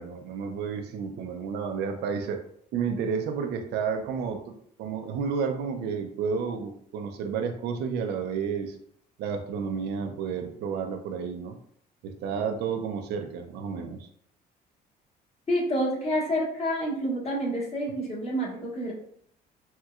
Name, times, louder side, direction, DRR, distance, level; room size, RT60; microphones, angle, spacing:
voice 1, 0.0-2.4 2.7-8.8 9.2-11.6 12.0-14.1, right 6 dB, 75° right, 5 dB, 0.5 m, -31 dB
voice 2, 15.5-18.9, equal, 40° left, -4 dB, 1.3 m, -28 dB
4.3 x 2.2 x 2.3 m, 0.65 s
cardioid pair, 110°, 17 cm